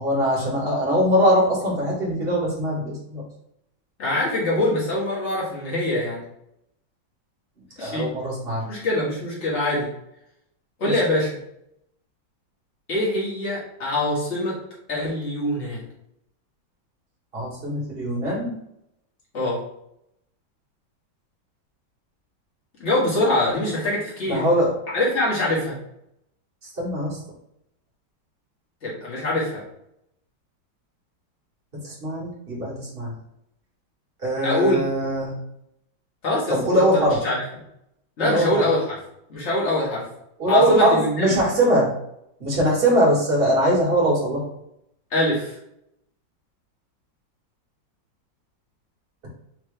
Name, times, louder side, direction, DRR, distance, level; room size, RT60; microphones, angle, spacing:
voice 1, 0.0-3.2 7.8-8.6 17.3-18.5 24.3-24.7 26.8-27.2 31.8-33.1 34.2-35.3 36.5-37.2 38.2-38.6 40.4-41.9 42.4-44.4, right 1 dB, 30° right, -5 dB, 1.7 m, -21 dB
voice 2, 4.0-6.2 7.8-8.1 8.7-9.9 10.8-11.4 12.9-14.5 14.9-15.8 19.3-19.6 22.8-24.4 24.9-25.7 28.8-29.6 34.4-34.9 36.2-36.5 36.9-37.4 38.2-39.0 39.3-40.1 40.5-41.4 45.1-45.6, left 1 dB, 35° left, -6 dB, 1.9 m, -23 dB
4.7 x 3.2 x 3.3 m, 0.77 s
omnidirectional pair, 2.1 m